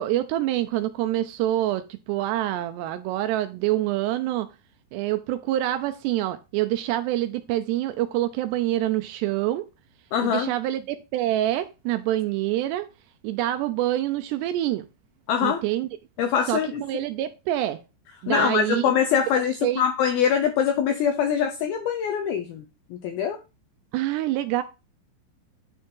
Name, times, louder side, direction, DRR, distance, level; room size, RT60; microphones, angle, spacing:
voice 1, 0.0-4.5 4.9-9.7 10.2-12.9 13.2-14.9 15.4-15.9 16.5-17.8 18.2-18.9 19.3-19.8 23.9-24.6, right 14 dB, 80° right, 10 dB, 2.5 m, -26 dB
voice 2, 10.1-10.5 15.3-15.6 16.2-16.8 18.3-22.6 22.9-23.4, left 8 dB, 80° left, 5 dB, 2.1 m, -23 dB
10.0 x 5.3 x 3.7 m, 0.28 s
omnidirectional pair, 5.2 m